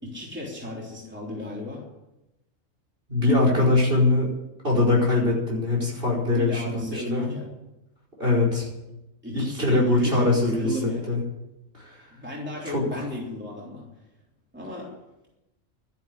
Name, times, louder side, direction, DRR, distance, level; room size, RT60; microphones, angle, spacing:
voice 1, 0.0-1.9 6.2-7.5 9.2-11.2 12.1-13.9 14.5-14.9, left 2 dB, 10° right, -3 dB, 3.5 m, -34 dB
voice 2, 3.1-4.3 4.6-7.3 8.2-8.7 9.3-10.8 11.1-11.2 11.7-11.9 12.7-12.8, left 2 dB, 45° right, -3 dB, 5.4 m, -22 dB
12.5 x 10.5 x 9.8 m, 0.93 s
omnidirectional pair, 1.4 m